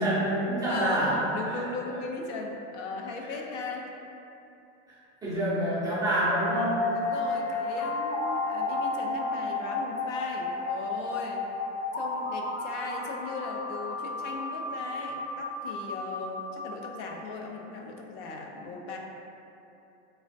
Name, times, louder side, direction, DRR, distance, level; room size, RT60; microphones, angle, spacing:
voice 1, 0.0-1.6 5.2-6.9, right 1 dB, 10° right, -11 dB, 0.3 m, -27 dB
voice 2, 0.7-3.9 6.9-11.4 12.0-19.0, left 3 dB, 85° left, 1 dB, 0.5 m, -38 dB
sound 1, 6.2-17.1, left 3 dB, 45° left, 0.7 m, -32 dB
3.2 x 2.1 x 2.5 m, 2.9 s
supercardioid pair, 145°, 36 cm